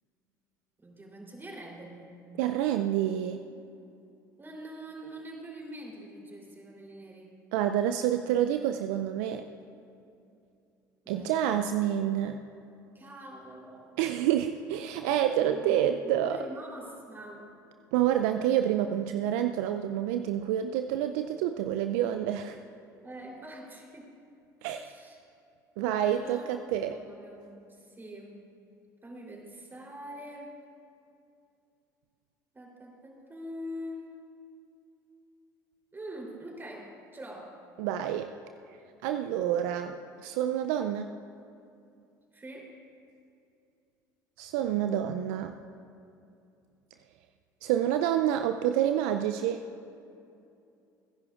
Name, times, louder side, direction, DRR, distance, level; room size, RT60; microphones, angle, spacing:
voice 1, 0.8-2.1 4.4-7.4 11.0-11.4 13.0-14.0 15.4-17.6 23.0-24.1 24.7-25.2 26.0-28.5 29.0-30.6 32.5-34.1 35.9-37.5 42.3-42.7, equal, 20° right, -1 dB, 3.5 m, -44 dB
voice 2, 2.4-3.4 7.5-9.4 11.1-12.4 14.0-16.4 17.9-22.6 24.6-24.9 25.8-27.0 37.8-38.3 39.0-41.1 44.4-45.5 47.6-49.7, right 11 dB, 70° right, 8 dB, 0.4 m, -28 dB
28.5 x 10.5 x 2.5 m, 2.6 s
hypercardioid pair, 65°, 10 cm